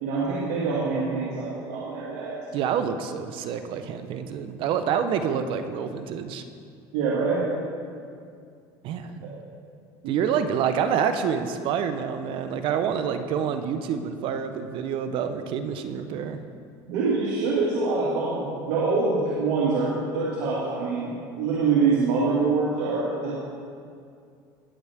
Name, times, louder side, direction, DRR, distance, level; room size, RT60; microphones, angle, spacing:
voice 1, 0.0-2.4 6.9-7.5 10.0-10.2 16.9-23.3, right 4 dB, 75° right, -6 dB, 2.2 m, -25 dB
voice 2, 2.5-6.4 8.8-9.4 10.1-16.4, right 7 dB, 60° right, 9 dB, 0.9 m, -27 dB
19.0 x 7.9 x 3.6 m, 2.3 s
supercardioid pair, 120°, 10 cm